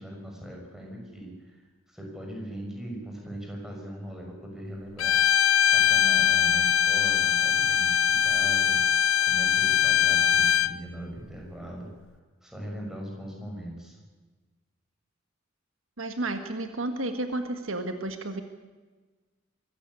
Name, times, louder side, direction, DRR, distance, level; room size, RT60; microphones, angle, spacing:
voice 1, 0.0-5.2 5.7-8.8 9.2-11.9 12.4-14.0, right 1 dB, ahead, 0 dB, 6.2 m, -40 dB
Bowed string instrument, 5.0-10.7, left 9 dB, 75° left, 0.6 m, -22 dB
voice 2, 16.0-18.4, right 2 dB, 75° right, 7 dB, 1.7 m, -32 dB
23.5 x 14.5 x 9.8 m, 1.3 s
head